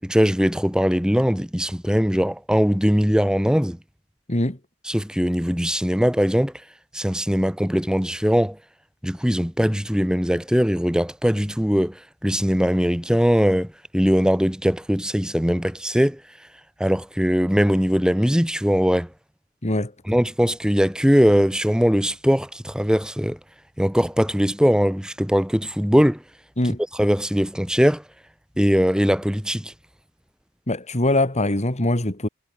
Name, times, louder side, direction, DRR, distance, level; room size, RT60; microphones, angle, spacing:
voice 1, 0.0-3.8 4.8-6.5 6.9-8.6 9.0-16.2 16.8-19.1 20.1-23.4 23.8-26.2 26.9-28.0 28.6-29.7, equal, 5° right, 4.8 m, -20 dB
voice 2, 30.7-32.3, left 1 dB, 35° left, 2.8 m, -22 dB
head